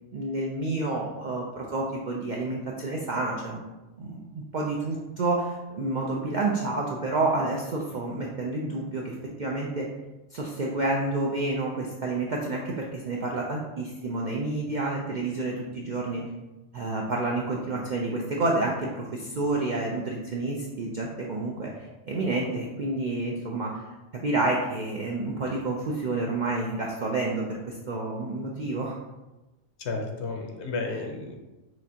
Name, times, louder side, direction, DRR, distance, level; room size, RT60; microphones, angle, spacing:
voice 1, 0.1-3.6 4.0-9.9 10.3-16.2 16.7-23.8 24.2-27.6 27.9-29.0, right 2 dB, 60° right, -2 dB, 0.5 m, -29 dB
voice 2, 29.8-31.4, left 3 dB, 65° left, 3 dB, 0.9 m, -32 dB
6.0 x 2.5 x 2.8 m, 1.1 s
omnidirectional pair, 1.3 m